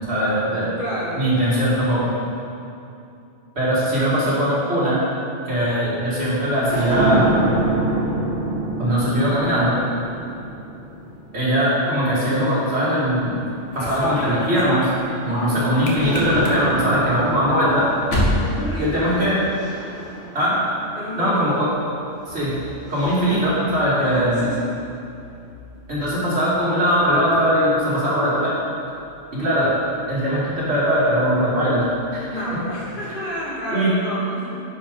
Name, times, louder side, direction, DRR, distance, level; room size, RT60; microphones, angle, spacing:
voice 1, 0.1-0.7 1.2-2.1 3.6-5.0 5.5-7.5 8.8-9.8 11.3-13.4 13.7-14.9 15.2-17.9 18.8-19.4 20.3-20.6 21.2-21.7 22.3-22.5 22.9-24.4 25.9-28.6 29.3-29.7 30.1-31.9 32.3-32.4 33.7-33.9, equal, 65° right, -8 dB, 2.5 m, -20 dB
voice 2, 0.8-1.2 15.2-15.7 18.4-19.1 21.0-21.6 24.0-24.7 32.3-34.6, left 1 dB, 45° left, -7 dB, 2.1 m, -30 dB
sound 1, 6.4-13.0 13.7-15.6 15.9-21.3 22.3-23.4, right 2 dB, 45° right, 2.1 m, -28 dB
sound 2, 13.4-19.6 19.9-20.5 21.5-33.2, left 1 dB, 85° left, 1.5 m, -33 dB
9.7 x 5.0 x 5.2 m, 2.7 s
omnidirectional pair, 1.2 m